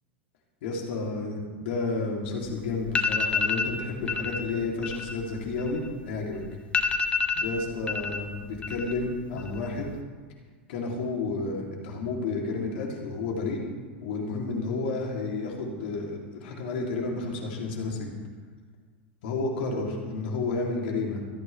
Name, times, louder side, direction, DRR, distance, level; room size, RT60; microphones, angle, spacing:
voice 1, 0.6-6.4 7.3-9.8 10.7-13.6 14.0-18.1 19.2-21.2, left 3 dB, 65° left, -1 dB, 3.4 m, -31 dB
sound 1, 2.4-2.5 2.9-3.7 4.1-4.4 4.7-6.2 6.4-6.5 6.7-8.2 8.5-9.1 9.4-9.9, left 5 dB, 20° left, 1.2 m, -28 dB
26.5 x 9.1 x 3.5 m, 1.5 s
hypercardioid pair, 90°, 6 cm